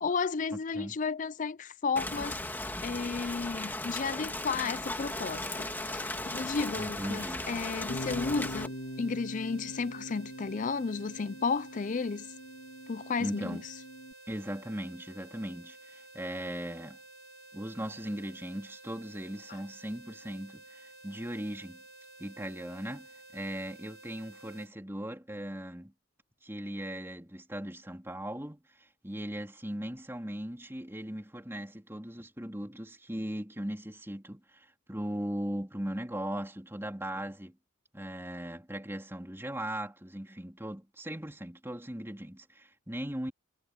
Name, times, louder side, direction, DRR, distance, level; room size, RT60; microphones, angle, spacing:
voice 1, 0.0-2.3 2.8-6.1 6.3-8.7 9.0-12.3 12.9-13.6, left 4 dB, 40° left, 0.4 m, -33 dB
voice 2, 0.5-1.0 6.8-7.4 13.2-13.6 14.3-17.0 17.5-21.8 22.2-25.9 26.4-37.6 37.9-43.3, right 1 dB, 10° right, 3.5 m, -38 dB
Rain, 2.0-8.7, left 2 dB, 10° left, 2.1 m, -37 dB
sound 1, 5.0-24.7, right 2 dB, 85° left, 4.1 m, -53 dB
Bass guitar, 7.9-14.1, equal, 60° left, 1.4 m, -43 dB
head